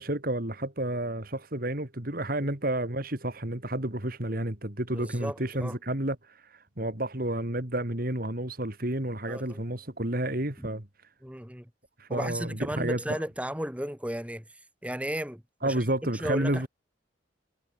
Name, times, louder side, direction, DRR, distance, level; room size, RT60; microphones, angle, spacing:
voice 1, 0.0-6.2 6.8-10.9 12.0-13.2 15.6-16.7, right 1 dB, 50° right, 3.0 m, -30 dB
voice 2, 4.9-5.7 9.3-9.6 11.2-11.7 12.1-14.4 14.8-15.8 16.2-16.7, equal, 5° right, 4.3 m, -34 dB
head